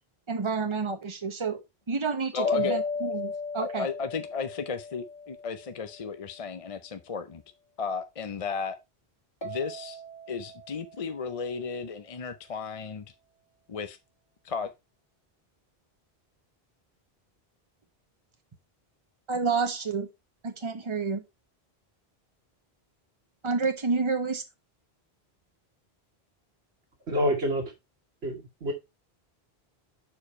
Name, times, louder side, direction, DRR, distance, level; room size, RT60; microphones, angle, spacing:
voice 1, 0.3-3.9 19.3-20.1 20.4-21.2 23.4-24.4, right 4 dB, 30° right, 1.1 m, -29 dB
voice 2, 2.3-2.8 3.6-7.4 7.8-8.8 9.4-10.0 10.3-13.1 13.7-14.0 14.4-14.7, left 5 dB, 40° left, 0.6 m, -34 dB
sound 1, 2.4-6.0 9.4-12.4, left 4 dB, 25° left, 2.0 m, -36 dB
voice 3, 27.1-27.7 28.2-28.7, equal, 80° right, 1.7 m, -27 dB
6.7 x 4.6 x 4.2 m
omnidirectional pair, 1.1 m